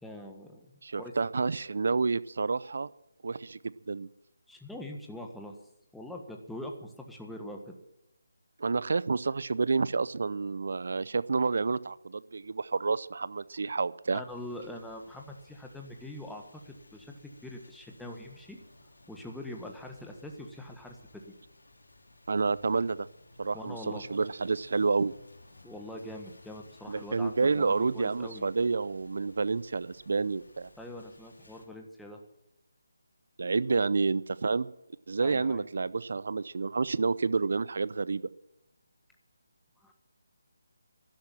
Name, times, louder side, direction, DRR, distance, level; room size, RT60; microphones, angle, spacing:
voice 1, 0.0-0.7 1.0-1.1 4.5-5.6 5.9-7.7 14.1-18.6 19.1-21.0 23.5-24.0 25.6-28.4 30.8-32.2 35.2-35.6 39.8-39.9, left 1 dB, ahead, 1 dB, 1.5 m, -43 dB
voice 2, 0.8-2.9 3.2-4.1 8.6-14.2 22.3-23.1 23.4-25.1 26.9-30.7 33.4-34.7 35.1-38.3, right 4 dB, 60° right, 18 dB, 0.6 m, -29 dB
sound 1, 14.3-31.7, left 2 dB, 80° left, 3.3 m, -57 dB
12.5 x 11.5 x 7.6 m, 0.84 s
figure-of-eight pair, 155°, 0 cm